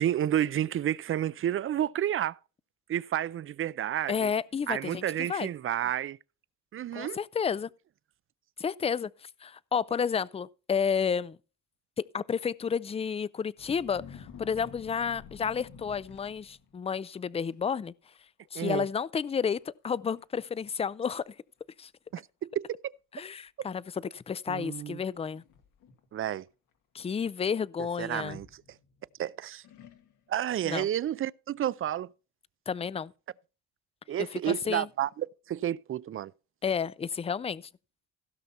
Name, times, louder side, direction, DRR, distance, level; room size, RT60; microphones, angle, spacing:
voice 1, 0.0-2.4 2.9-4.3 4.7-6.2 6.7-7.2 18.5-18.9 22.1-22.8 24.5-25.0 26.1-26.5 28.0-28.6 29.2-29.6 30.3-32.1 34.1-36.3, right 11 dB, 45° right, 0.4 m, -30 dB
voice 2, 4.1-5.0 5.3-5.5 6.9-7.7 8.6-9.1 9.4-11.4 12.0-17.9 18.5-21.3 21.8-21.9 23.1-23.8 24.1-25.4 26.9-28.4 30.6-30.9 32.7-33.1 34.3-34.9 36.6-37.7, left 6 dB, 20° left, 0.4 m, -31 dB
sound 1, 13.6-16.8 17.5-17.7 18.0-18.5 18.7-18.8 19.6-19.7 20.2-20.3 20.8-21.3 22.1-22.2 25.1-26.1 28.1-29.1 29.6-30.4, left 6 dB, 90° left, 1.9 m, -50 dB
16.5 x 5.7 x 4.2 m
cardioid pair, 90°, 30 cm